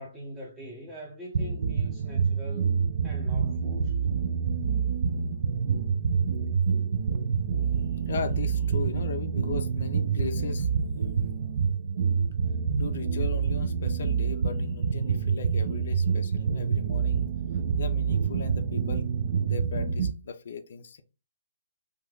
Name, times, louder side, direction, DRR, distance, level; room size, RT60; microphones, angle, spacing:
voice 1, 0.0-4.0, right 1 dB, 5° right, 0.6 m, -43 dB
sound 1, 1.3-20.1, right 6 dB, 55° right, 0.3 m, -27 dB
voice 2, 8.1-10.7 11.0-11.3 12.8-17.3 17.8-19.1 19.4-21.0, left 5 dB, 55° left, 0.4 m, -37 dB
2.5 x 2.3 x 3.4 m
figure-of-eight pair, 135°, 0 cm